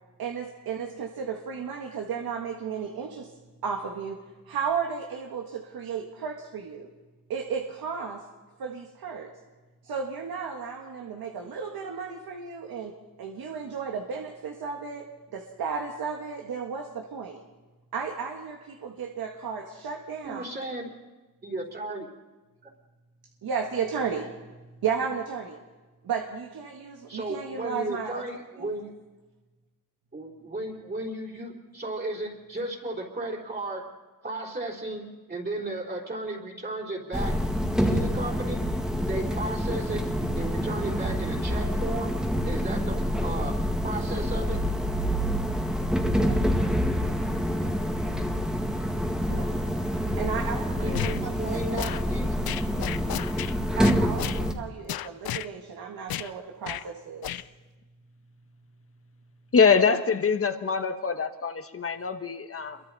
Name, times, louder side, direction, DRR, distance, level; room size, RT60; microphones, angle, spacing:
voice 1, 0.2-3.3 3.6-4.2 4.4-6.9 7.3-8.2 8.6-9.3 9.8-12.9 13.2-15.1 15.3-17.4 17.9-20.5 23.4-24.3 24.8-25.6 26.0-28.2 28.6-28.7 46.2-46.4 49.3-49.5 50.2-52.2 53.8-57.3, right 6 dB, 90° right, 1 dB, 1.7 m, -34 dB
voice 2, 20.2-20.9 21.4-22.1 27.1-28.9 30.1-33.8 34.2-37.3 37.8-38.7 39.1-40.0 40.3-42.1 42.4-43.5 43.8-44.6 50.8-52.4, right 2 dB, 30° right, -2 dB, 3.9 m, -34 dB
sound 1, 37.1-54.5, equal, ahead, 1.8 m, -27 dB
sound 2, 50.9-51.2 51.8-52.0 52.5-53.5 53.8-54.4 54.9-55.5 56.1-56.3 56.6-56.8 57.2-57.4, left 12 dB, 90° left, 0.7 m, -32 dB
voice 3, 59.5-62.8, left 5 dB, 40° left, 8 dB, 1.4 m, -24 dB
28.0 x 23.0 x 4.2 m, 1.2 s
wide cardioid pair, 115°, 35 cm